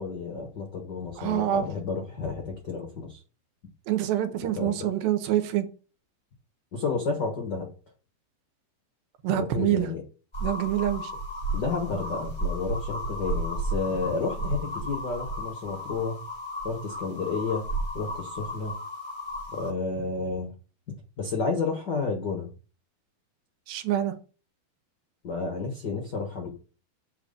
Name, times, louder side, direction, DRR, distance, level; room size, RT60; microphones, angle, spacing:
voice 1, 0.0-3.2 4.4-4.7 6.7-7.7 9.3-10.0 11.5-16.2 16.6-17.7 17.9-18.8 19.5-20.5 21.2-22.5 25.2-26.5, left 4 dB, 75° left, 0.9 m, -31 dB
voice 2, 1.2-1.6 3.9-5.7 9.2-9.9 10.4-11.1 23.7-24.1, right 12 dB, 80° right, 2.7 m, -26 dB
sound 1, 10.3-19.7, right 1 dB, 40° left, 0.4 m, -33 dB
8.0 x 4.4 x 6.7 m
omnidirectional pair, 4.3 m